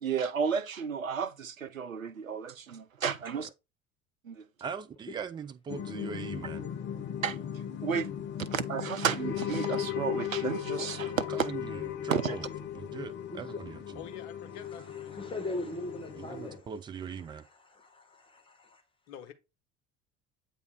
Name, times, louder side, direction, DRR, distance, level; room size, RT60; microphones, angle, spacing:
voice 1, 0.0-3.5 4.2-4.4 7.2-7.4 7.8-8.1 8.4-11.3 12.1-12.4, right 7 dB, 90° right, 0.5 m, -32 dB
voice 2, 4.6-6.7 11.3-12.5 12.7-14.0 16.1-17.4, right 6 dB, 15° right, 0.3 m, -41 dB
sound 1, 5.7-16.6, left 10 dB, 30° left, 0.6 m, -37 dB
voice 3, 13.3-13.6 14.9-16.6 17.6-18.8, left 2 dB, 15° left, 1.5 m, -40 dB
voice 4, 13.9-15.4 16.1-16.5 19.1-19.3, left 9 dB, 55° left, 1.1 m, -48 dB
8.1 x 2.8 x 4.7 m
figure-of-eight pair, 65°, 39 cm